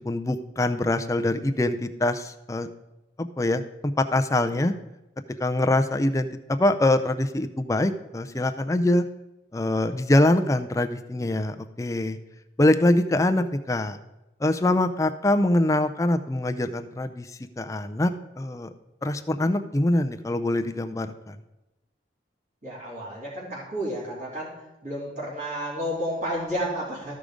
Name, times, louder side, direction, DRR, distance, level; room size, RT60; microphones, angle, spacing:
voice 1, 0.0-2.7 3.2-4.7 5.4-9.0 9.5-12.2 12.6-14.0 14.4-17.3 17.6-18.7 19.0-21.4, left 1 dB, 15° left, 8 dB, 0.4 m, -24 dB
voice 2, 22.6-24.5 24.8-27.1, equal, 45° right, -11 dB, 3.2 m, -31 dB
13.5 x 5.1 x 4.9 m, 0.98 s
head